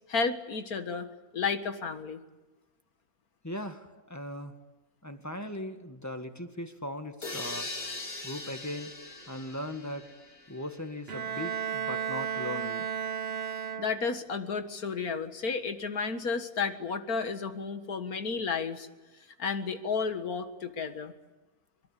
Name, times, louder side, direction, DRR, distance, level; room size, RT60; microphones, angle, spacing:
voice 1, 0.1-1.1 1.3-2.2 13.8-18.9 19.4-21.1, left 5 dB, 85° left, 8 dB, 2.2 m, -32 dB
voice 2, 3.4-4.5 5.0-8.9 9.3-10.1 10.5-12.9, left 1 dB, 10° left, 6 dB, 1.8 m, -39 dB
sound 1, 7.2-11.0, left 2 dB, 65° left, 3.7 m, -41 dB
Bowed string instrument, 11.1-14.3, right 8 dB, 50° right, 1.1 m, -34 dB
24.0 x 23.0 x 8.4 m, 1.2 s
omnidirectional pair, 1.5 m